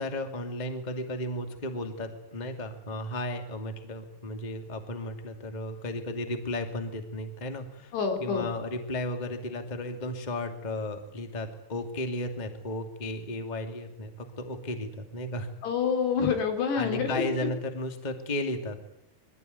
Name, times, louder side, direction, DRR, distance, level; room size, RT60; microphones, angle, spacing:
voice 1, 0.0-15.5 16.7-18.9, left 1 dB, 15° left, 5 dB, 1.7 m, -34 dB
voice 2, 7.9-8.5 15.6-17.2, left 6 dB, 80° left, 4 dB, 5.5 m, -27 dB
23.5 x 17.0 x 9.5 m, 0.89 s
omnidirectional pair, 4.7 m